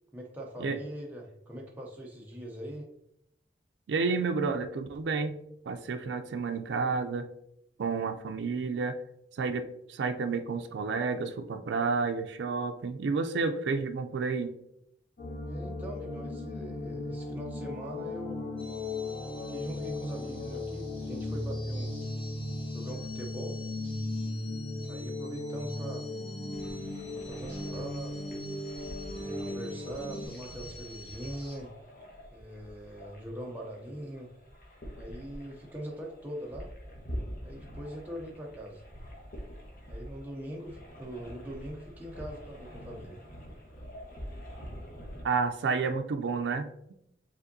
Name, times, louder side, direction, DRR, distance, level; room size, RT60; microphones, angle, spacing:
voice 1, 0.1-2.9 15.4-18.4 19.4-22.0 22.7-23.6 24.8-26.1 27.2-28.5 29.1-31.7 32.3-34.3 35.0-36.7 37.4-38.8 39.9-43.2, right 1 dB, 10° right, -2 dB, 0.5 m, -42 dB
voice 2, 3.9-5.3 5.7-7.3 7.8-9.0 9.3-14.6 45.2-46.9, right 4 dB, 75° right, 6 dB, 0.3 m, -30 dB
sound 1, 15.2-30.3, left 2 dB, 90° left, 1.5 m, -37 dB
sound 2, 18.6-31.6, left 2 dB, 30° left, 1.0 m, -50 dB
sound 3, 26.5-45.2, equal, 50° left, 1.0 m, -46 dB
4.9 x 3.5 x 2.6 m, 0.76 s
head